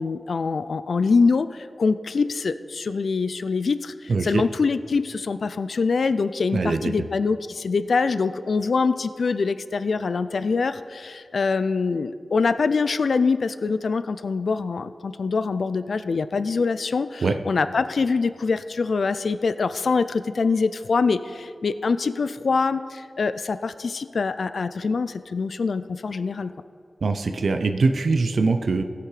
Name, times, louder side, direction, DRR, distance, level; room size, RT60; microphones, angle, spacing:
voice 1, 0.0-26.5, left 4 dB, 75° left, 13 dB, 0.3 m, -24 dB
voice 2, 4.1-4.4 6.5-6.9 17.2-17.4 27.0-28.8, right 3 dB, 80° right, 7 dB, 0.5 m, -22 dB
17.0 x 5.7 x 4.9 m, 2.2 s
wide cardioid pair, 100°, 0 cm